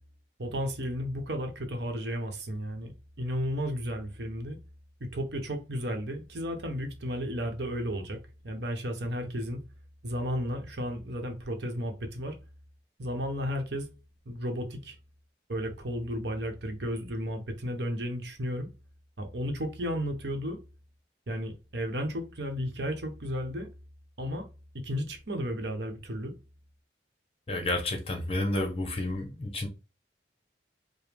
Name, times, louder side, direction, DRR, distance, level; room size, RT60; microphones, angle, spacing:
voice 1, 0.4-2.9 3.2-4.6 5.0-8.2 8.4-9.6 10.0-12.4 13.0-13.9 14.3-15.0 15.5-18.7 19.2-20.6 21.3-23.7 24.2-24.4 24.7-26.3, equal, 70° right, 0.9 m, -33 dB
voice 2, 27.5-29.7, left 1 dB, 30° left, 0.8 m, -30 dB
5.0 x 2.1 x 3.3 m
head